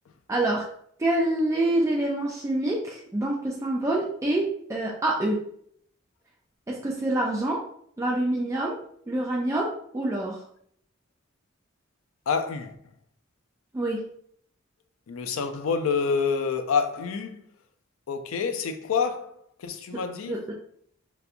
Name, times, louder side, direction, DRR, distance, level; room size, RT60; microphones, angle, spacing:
voice 1, 0.3-0.6 1.0-5.4 6.7-7.6 8.0-8.8 9.1-10.4 13.7-14.0 19.9-20.0 20.3-20.5, right 1 dB, 15° right, 0.3 m, -26 dB
voice 2, 12.3-12.7 15.1-17.4 18.1-19.3 19.6-20.4, left 5 dB, 90° left, 0.4 m, -27 dB
4.1 x 2.2 x 2.5 m
head